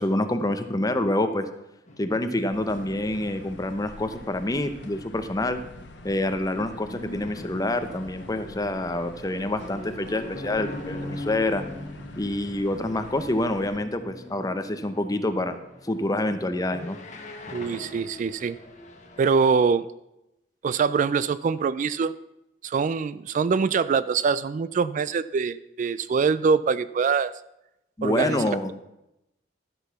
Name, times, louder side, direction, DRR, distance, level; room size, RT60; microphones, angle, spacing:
voice 1, 0.0-1.5 2.0-5.6 6.0-11.6 12.2-15.6 15.8-17.0 28.0-28.7, left 1 dB, 20° left, 9 dB, 0.7 m, -27 dB
sound 1, 1.9-19.5, left 1 dB, 45° left, 1.4 m, -42 dB
sound 2, 2.5-13.8, left 2 dB, 80° left, 1.2 m, -46 dB
voice 2, 17.5-18.6 19.2-19.9 20.6-22.1 22.6-27.3 28.0-28.7, right 5 dB, 45° right, 16 dB, 0.3 m, -24 dB
12.5 x 6.2 x 5.7 m, 0.88 s
head